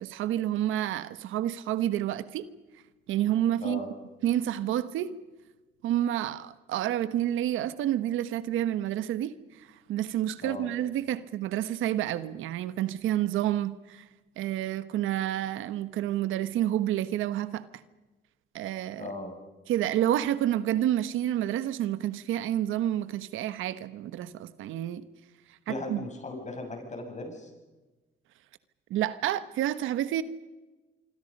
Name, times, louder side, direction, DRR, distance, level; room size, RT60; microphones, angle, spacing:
voice 1, 0.0-2.5 3.1-3.9 4.2-5.2 5.8-9.4 9.9-14.0 14.4-17.6 18.5-19.1 19.7-25.0 25.7-26.0 28.9-30.2, right 12 dB, 90° right, 1.2 m, -29 dB
voice 2, 19.0-19.3 25.7-27.5, left 2 dB, 35° left, 7.2 m, -37 dB
26.0 x 25.5 x 5.4 m
cardioid pair, 90°, 20 cm